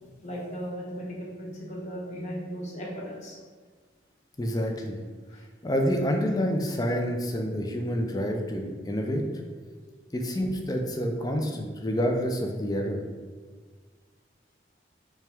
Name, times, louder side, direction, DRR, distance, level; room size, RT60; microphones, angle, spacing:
voice 1, 0.0-3.4 9.8-9.9, equal, 40° left, -4 dB, 1.0 m, -37 dB
voice 2, 4.4-5.0 5.6-9.2 10.1-13.0, equal, 20° left, 2 dB, 0.4 m, -28 dB
3.4 x 3.1 x 4.8 m, 1.5 s
head